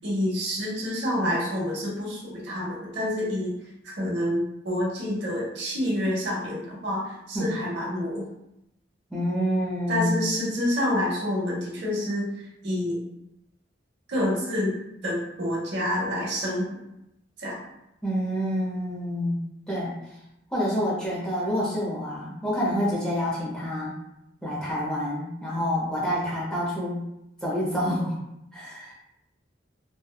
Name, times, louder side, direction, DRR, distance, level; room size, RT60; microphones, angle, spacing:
voice 1, 0.0-3.5 3.8-8.2 9.9-12.3 12.6-13.0 14.1-14.7 15.0-16.6 17.4-17.6, left 1 dB, 70° right, -4 dB, 0.8 m, -28 dB
voice 2, 9.1-10.3 12.7-12.8 18.0-19.4 19.7-20.0 20.5-23.9 24.4-27.1 27.4-28.2 28.5-28.9, equal, 5° left, -7 dB, 0.6 m, -27 dB
2.8 x 2.2 x 2.2 m, 0.84 s
head